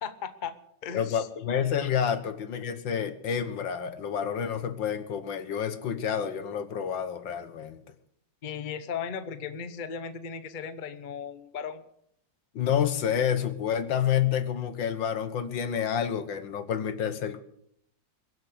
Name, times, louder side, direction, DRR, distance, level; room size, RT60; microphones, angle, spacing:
voice 1, 0.0-0.5 0.8-1.3 8.4-11.8, left 7 dB, 35° left, 11 dB, 0.9 m, -36 dB
voice 2, 0.9-7.8 12.6-17.4, left 8 dB, 75° left, 11 dB, 1.9 m, -29 dB
22.5 x 7.8 x 8.0 m, 0.74 s
omnidirectional pair, 2.0 m